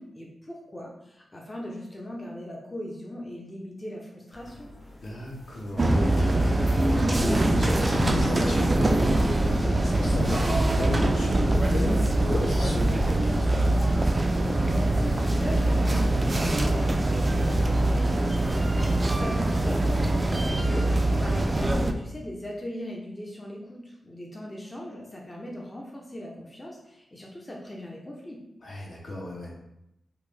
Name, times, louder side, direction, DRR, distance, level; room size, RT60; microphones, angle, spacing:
voice 1, 0.0-4.7 14.8-20.7 21.2-28.4, left 1 dB, 25° left, -2 dB, 0.6 m, -39 dB
sound 1, 4.3-20.2, left 1 dB, 80° left, 1.3 m, -43 dB
voice 2, 5.0-13.8 20.5-20.9 28.6-29.6, left 1 dB, 65° left, -2 dB, 0.8 m, -33 dB
sound 2, 5.8-21.9, right 1 dB, 35° right, 0.3 m, -23 dB
3.5 x 2.1 x 3.2 m, 0.85 s
cardioid pair, 75°, 0 cm